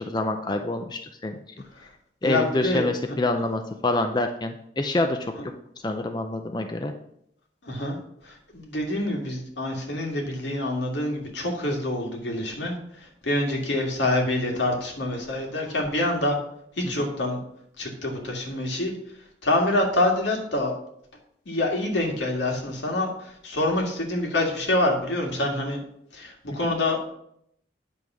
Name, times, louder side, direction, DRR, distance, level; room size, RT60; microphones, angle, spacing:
voice 1, 0.0-1.4 2.2-5.3 5.8-6.9 26.6-26.7, left 2 dB, 25° left, 6 dB, 0.5 m, -26 dB
voice 2, 2.2-2.9 5.3-5.4 7.6-8.0 8.2-16.4 16.7-17.4 17.8-19.2 19.4-20.8 21.5-25.8 26.1-27.1, left 1 dB, 90° left, 1 dB, 2.0 m, -26 dB
9.5 x 3.5 x 6.1 m, 0.71 s
head